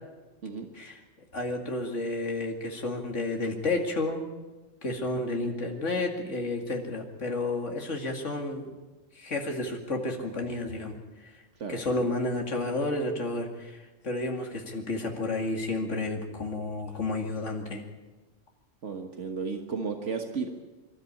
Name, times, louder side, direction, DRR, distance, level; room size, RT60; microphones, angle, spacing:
voice 1, 1.3-4.3 4.8-8.7 9.2-11.0 11.2-11.3 11.7-17.8, left 2 dB, 65° left, 2 dB, 2.7 m, -31 dB
voice 2, 18.8-20.5, right 5 dB, 65° right, 4 dB, 1.7 m, -33 dB
24.5 x 13.0 x 8.4 m, 1.2 s
omnidirectional pair, 1.3 m